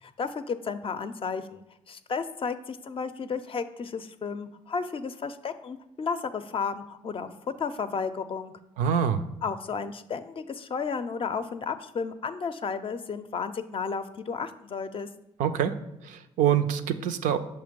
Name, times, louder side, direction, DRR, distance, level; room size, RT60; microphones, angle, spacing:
voice 1, 0.0-7.3 7.6-8.5 9.4-15.1, left 5 dB, 45° left, 10 dB, 0.4 m, -33 dB
voice 2, 8.8-9.2 15.4-15.7 16.0-17.4, right 9 dB, 90° right, 9 dB, 0.4 m, -25 dB
6.5 x 2.9 x 5.1 m, 0.87 s
supercardioid pair, 60°, 13 cm